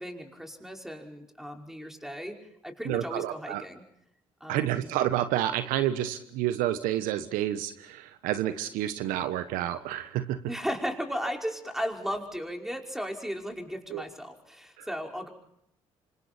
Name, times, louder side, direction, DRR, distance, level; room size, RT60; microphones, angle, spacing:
voice 1, 0.0-2.4 2.6-3.8 4.4-4.9 10.5-15.3, equal, 5° right, 2 dB, 5.2 m, -35 dB
voice 2, 2.9-3.6 4.5-10.4 13.9-14.0, right 12 dB, 75° right, 11 dB, 1.2 m, -29 dB
28.0 x 26.0 x 4.4 m, 0.74 s
hypercardioid pair, 55°, 14 cm